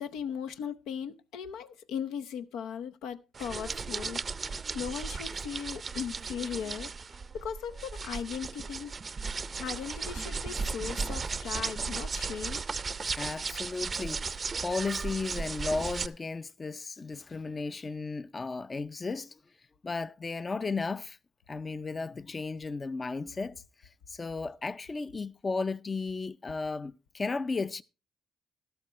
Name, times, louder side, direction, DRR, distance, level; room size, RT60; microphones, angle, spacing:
voice 1, 0.0-4.2 4.5-6.9 7.3-8.9 9.6-12.7, left 7 dB, 90° left, 0.7 m, -38 dB
sound 1, 3.3-16.1, right 4 dB, 35° right, 0.5 m, -36 dB
voice 2, 13.2-19.4 19.8-21.2 21.5-23.6 24.1-27.8, left 4 dB, 30° left, 0.5 m, -34 dB
13.0 x 12.0 x 3.1 m
cardioid pair, 90°, 0 cm